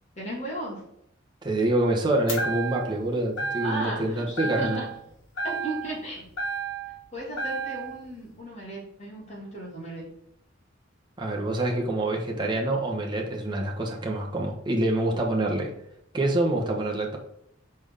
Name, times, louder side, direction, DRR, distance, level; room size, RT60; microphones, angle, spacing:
voice 1, 0.1-0.8 3.6-4.9 5.4-6.3 7.1-10.1, right 1 dB, 35° left, -4 dB, 2.7 m, -35 dB
voice 2, 1.4-4.8 11.2-15.7 16.1-17.2, right 1 dB, 25° right, -1 dB, 1.2 m, -26 dB
sound 1, 2.3-3.0 3.4-4.0 4.4-5.1 5.4-7.0 7.4-8.0, right 3 dB, 85° left, 1.8 m, -32 dB
5.2 x 4.4 x 5.6 m, 0.75 s
head